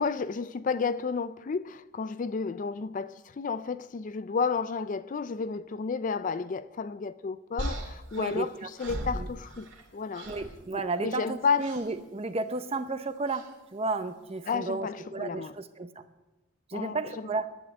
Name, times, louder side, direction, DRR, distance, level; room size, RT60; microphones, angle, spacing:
voice 1, 0.0-9.7 9.9-10.3 10.7-11.8 14.5-15.5 16.7-17.3, left 5 dB, 40° left, 0.4 m, -32 dB
sound 1, 7.6-9.9 10.1-10.5 11.6-11.9 13.3-13.5, equal, 65° right, 2.7 m, -37 dB
voice 2, 8.2-8.5 9.1-9.3 10.3-13.5 13.7-15.9 16.7-17.5, right 3 dB, 30° right, 0.8 m, -33 dB
11.0 x 10.0 x 9.0 m
head